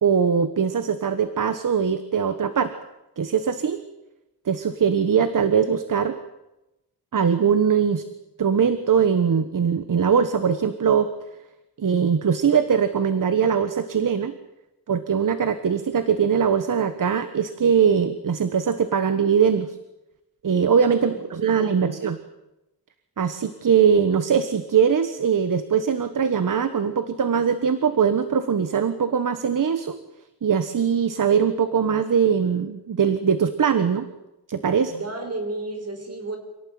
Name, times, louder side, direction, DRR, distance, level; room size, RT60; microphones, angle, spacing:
voice 1, 0.0-2.7 3.2-3.8 4.4-6.2 7.1-8.0 8.4-11.1 11.8-14.3 14.9-19.8 20.4-22.2 23.2-30.0 30.4-34.1 34.5-34.9, right 7 dB, 55° right, 11 dB, 1.4 m, -21 dB
voice 2, 20.9-22.0 34.9-36.4, right 2 dB, 40° right, 5 dB, 5.4 m, -34 dB
27.0 x 18.0 x 9.4 m, 0.94 s
wide cardioid pair, 160°, 37 cm